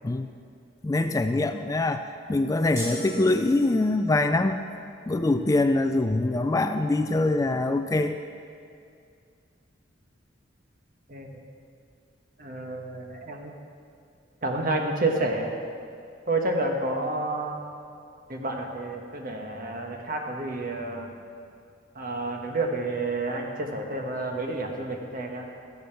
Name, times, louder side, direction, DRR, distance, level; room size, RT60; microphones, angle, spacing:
voice 1, 0.8-4.6 5.1-8.2, left 2 dB, 20° left, 8 dB, 0.3 m, -24 dB
sound 1, 2.8-4.1, right 2 dB, 15° right, 2.6 m, -37 dB
voice 2, 12.4-13.5 14.4-15.5 16.3-17.6 18.3-21.1 21.9-25.5, right 2 dB, 50° right, 2 dB, 1.3 m, -29 dB
13.5 x 8.2 x 5.8 m, 2.4 s
head